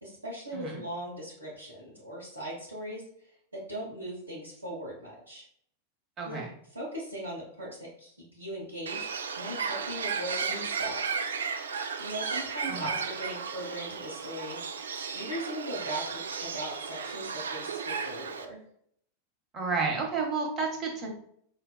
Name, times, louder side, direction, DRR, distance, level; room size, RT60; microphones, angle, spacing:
voice 1, 0.0-3.0 3.5-5.4 6.2-6.4 6.7-11.0 12.0-14.6 15.1-18.6, right 1 dB, 85° right, -8 dB, 0.8 m, -39 dB
voice 2, 6.2-6.5 12.7-12.9 19.5-21.1, right 4 dB, 30° right, 0 dB, 1.0 m, -31 dB
Bird, 8.9-18.5, right 5 dB, 70° right, 0.3 m, -34 dB
5.0 x 2.2 x 2.2 m, 0.67 s
figure-of-eight pair, 90°, 0 cm